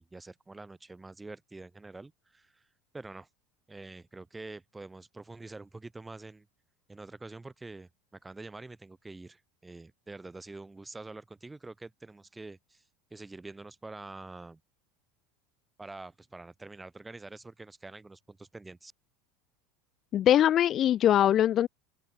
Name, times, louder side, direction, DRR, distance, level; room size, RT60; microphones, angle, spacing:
voice 1, 0.0-2.7 2.9-3.3 3.7-6.5 6.9-12.8 13.1-14.6 15.8-18.9, right 3 dB, 10° right, 1.9 m, -46 dB
voice 2, 20.1-21.7, left 11 dB, 30° left, 0.7 m, -22 dB
supercardioid pair, 155°, 0 cm